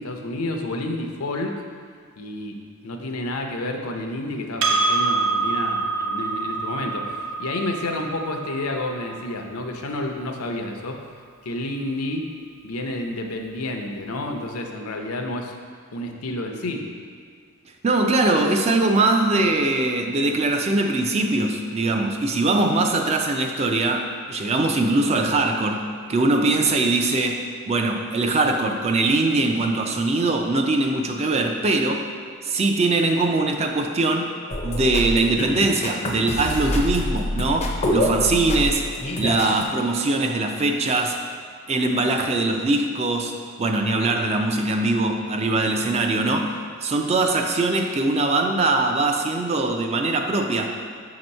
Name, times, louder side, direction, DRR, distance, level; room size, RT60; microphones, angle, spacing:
voice 1, 0.0-1.6 2.2-11.0 11.4-12.3 12.6-15.5 15.9-16.9, left 1 dB, 85° left, 3 dB, 0.6 m, -30 dB
Percussion, 4.6-9.4, right 3 dB, 60° right, 0.7 m, -26 dB
voice 2, 17.8-32.0 32.4-34.3 34.6-38.9 39.2-41.2 41.7-50.8, right 2 dB, 30° right, 4 dB, 0.4 m, -22 dB
sound 1, 34.5-39.6, left 1 dB, 30° left, 0.5 m, -26 dB
6.1 x 2.9 x 5.3 m, 2.1 s
head